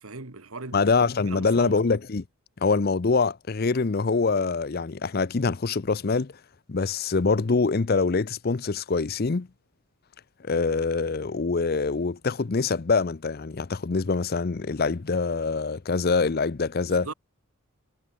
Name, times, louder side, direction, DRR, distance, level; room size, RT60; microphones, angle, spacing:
voice 1, 0.0-1.8 16.9-17.1, right 3 dB, 80° right, 2.0 m, -39 dB
voice 2, 0.7-2.2 2.6-6.3 6.7-9.5 10.4-17.1, left 4 dB, 45° left, 0.6 m, -24 dB
head